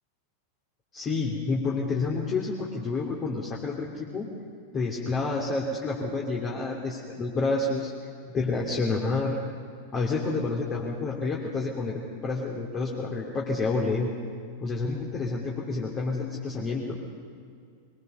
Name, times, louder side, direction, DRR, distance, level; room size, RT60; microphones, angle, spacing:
voice 1, 0.9-4.3 4.7-7.9 8.3-9.4 9.9-14.1 14.6-17.0, left 3 dB, 25° left, -3 dB, 2.9 m, -29 dB
23.5 x 22.0 x 6.6 m, 2.2 s
figure-of-eight pair, 90°, 0 cm